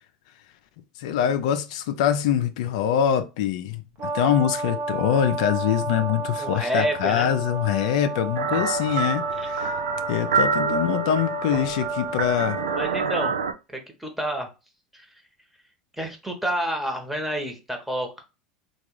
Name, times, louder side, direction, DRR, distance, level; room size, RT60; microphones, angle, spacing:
voice 1, 1.0-9.8 10.1-12.6, left 9 dB, 70° left, 0.3 m, -24 dB
Brass instrument, 4.0-13.0, right 2 dB, 50° right, 0.8 m, -32 dB
voice 2, 6.4-7.3 9.4-9.5 10.9-11.0 12.8-13.3 13.7-14.5 14.9-15.1 16.0-18.2, right 1 dB, 5° right, 1.0 m, -29 dB
sound 1, 8.4-13.5, right 5 dB, 90° right, 0.3 m, -27 dB
3.3 x 2.3 x 3.0 m
hypercardioid pair, 85°, 4 cm